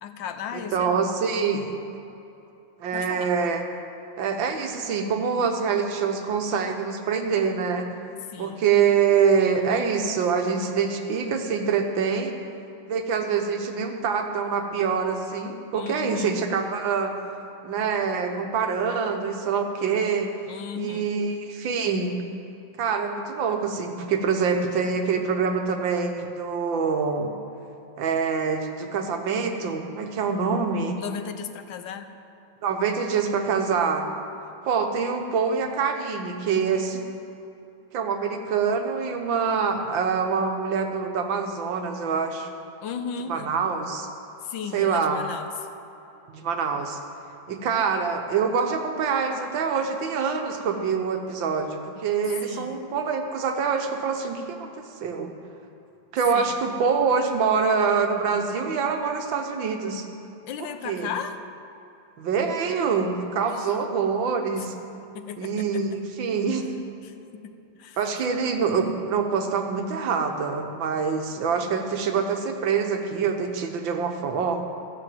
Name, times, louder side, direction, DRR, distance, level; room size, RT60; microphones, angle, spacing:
voice 1, 0.0-1.1 2.9-3.3 8.3-8.6 15.7-16.4 20.5-21.2 31.0-32.1 42.8-43.5 44.4-45.5 52.4-52.9 56.3-56.6 60.5-61.4 63.5-63.8 64.6-64.7 65.1-65.8 67.0-68.0, left 7 dB, 80° left, 9 dB, 1.5 m, -36 dB
voice 2, 0.5-1.7 2.8-3.6 4.2-7.9 8.4-12.4 12.9-17.1 17.6-20.3 20.8-22.2 22.8-27.3 28.0-31.0 32.6-34.1 34.6-37.0 37.9-42.5 43.3-44.1 44.7-45.2 46.3-47.0 47.5-55.3 56.1-60.0 60.9-61.1 62.2-64.7 65.4-66.7 68.0-74.6, right 6 dB, 85° right, 5 dB, 1.8 m, -25 dB
14.0 x 7.6 x 7.7 m, 2.8 s
omnidirectional pair, 2.0 m